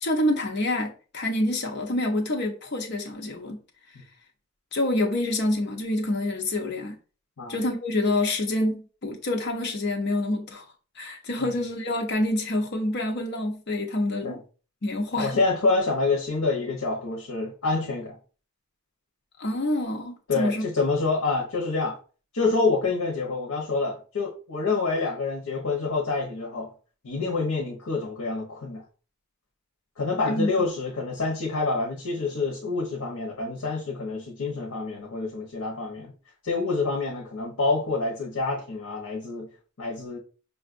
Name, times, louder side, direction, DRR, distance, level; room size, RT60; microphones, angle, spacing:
voice 1, 0.0-3.6 4.7-7.0 7.5-10.6 11.0-14.4 14.8-15.4 19.4-20.6 30.3-30.5, left 1 dB, 50° left, 0.7 m, -27 dB
voice 2, 15.2-18.2 20.3-22.0 22.3-26.7 27.0-28.8 30.0-36.1 36.4-39.5 39.8-40.2, left 3 dB, 85° left, 0.8 m, -27 dB
5.2 x 2.4 x 2.5 m
head